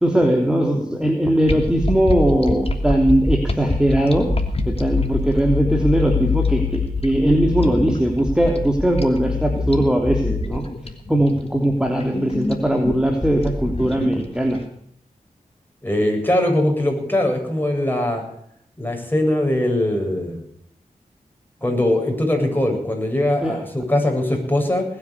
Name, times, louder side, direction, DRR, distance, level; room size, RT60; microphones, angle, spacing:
voice 1, 0.0-4.3 4.6-10.6 11.1-14.6 23.4-23.6, right 1 dB, 5° right, 2 dB, 3.3 m, -19 dB
sound 1, 1.4-14.6, left 3 dB, 40° left, 3.0 m, -25 dB
voice 2, 15.8-18.2 18.8-20.4 21.6-24.8, left 1 dB, 15° left, 2 dB, 7.8 m, -21 dB
20.0 x 9.8 x 6.7 m, 0.70 s
cardioid pair, 40°, 15 cm